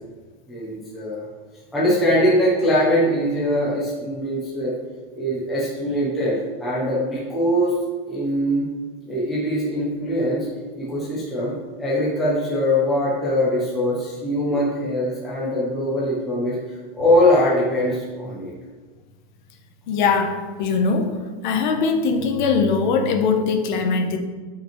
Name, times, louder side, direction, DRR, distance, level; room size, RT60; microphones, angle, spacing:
voice 1, 0.5-1.2 1.7-4.7 5.1-7.7 8.1-8.7 9.0-10.5 10.8-11.5 11.8-16.6 16.9-18.5, left 1 dB, ahead, -8 dB, 0.3 m, -22 dB
voice 2, 19.9-21.1 21.4-24.2, left 5 dB, 50° left, 5 dB, 0.8 m, -21 dB
8.8 x 5.1 x 2.9 m, 1.4 s
supercardioid pair, 180°, 30 cm